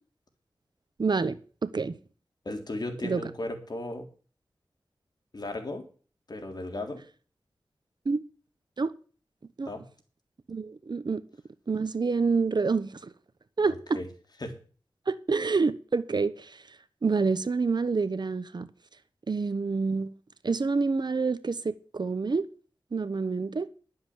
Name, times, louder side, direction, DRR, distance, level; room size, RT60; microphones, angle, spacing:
voice 1, 1.0-1.9 3.0-3.2 8.0-8.2 8.8-8.9 9.6-9.7 10.5-11.2 11.7-13.0 13.6-14.0 15.1-16.6 17.0-18.7 19.3-20.1 20.4-22.5 22.9-23.7, right 4 dB, 55° right, 1.0 m, -27 dB
voice 2, 2.5-4.1 5.3-5.9 6.3-7.0 9.7-9.8 13.6-14.1 14.4-14.6, left 2 dB, 55° left, 3.5 m, -36 dB
11.5 x 7.6 x 7.7 m
cardioid pair, 50°, 9 cm